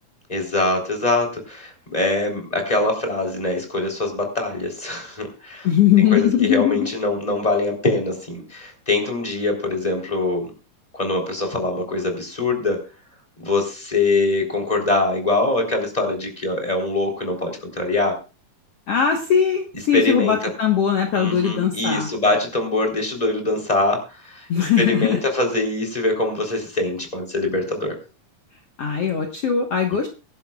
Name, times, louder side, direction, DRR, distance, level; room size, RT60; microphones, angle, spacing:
voice 1, 0.3-5.7 6.0-10.5 10.9-12.8 13.4-18.2 19.9-20.4 21.1-24.5 24.8-28.0, left 2 dB, 10° left, 3 dB, 3.5 m, -23 dB
voice 2, 5.6-6.9 18.9-22.1 24.5-25.2 28.8-30.1, left 8 dB, 55° left, 3 dB, 2.0 m, -20 dB
24.0 x 11.0 x 2.4 m, 0.32 s
omnidirectional pair, 4.1 m